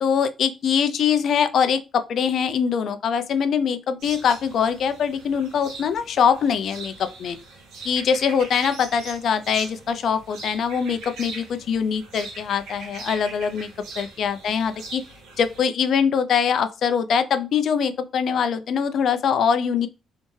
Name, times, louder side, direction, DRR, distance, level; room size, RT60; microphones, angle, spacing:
voice 1, 0.0-7.4 7.8-13.7 14.0-15.0 15.4-19.9, left 7 dB, 65° left, 0.4 m, -23 dB
sound 1, 4.0-15.6, right 3 dB, 90° right, 1.1 m, -40 dB
3.3 x 2.7 x 3.1 m
cardioid pair, 90°, 0 cm